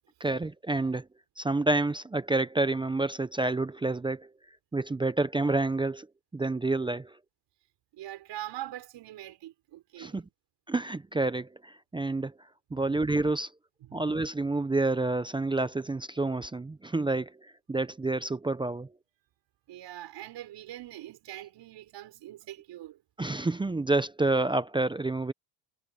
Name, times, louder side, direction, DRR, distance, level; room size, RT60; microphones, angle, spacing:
voice 1, 0.2-1.1 1.4-4.3 4.7-6.1 6.3-7.2 10.0-10.2 10.7-12.3 12.7-13.5 13.9-18.9 23.2-25.3, right 2 dB, 10° right, 0.7 m, -28 dB
voice 2, 7.9-10.2 12.7-12.8 13.8-14.2 19.7-23.0, right 13 dB, 55° right, 5.4 m, -43 dB
cardioid pair, 115°, 49 cm